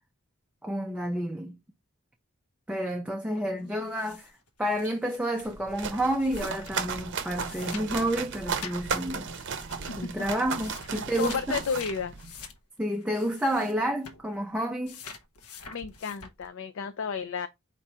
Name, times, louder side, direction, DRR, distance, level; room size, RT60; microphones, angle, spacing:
voice 1, 0.6-1.6 2.7-4.3 4.6-9.3 10.0-11.6 12.8-15.0, right 1 dB, 5° right, 0.4 m, -30 dB
sound 1, 3.8-6.9 7.3-7.9 8.1-8.8 9.3-10.0 10.4-13.8 14.0-14.3 14.9-16.5, left 6 dB, 85° left, 0.8 m, -46 dB
sound 2, 5.4-12.4, right 5 dB, 55° right, 0.7 m, -35 dB
voice 2, 10.9-12.1 15.7-17.5, left 5 dB, 60° left, 0.4 m, -32 dB
4.6 x 2.5 x 4.2 m
head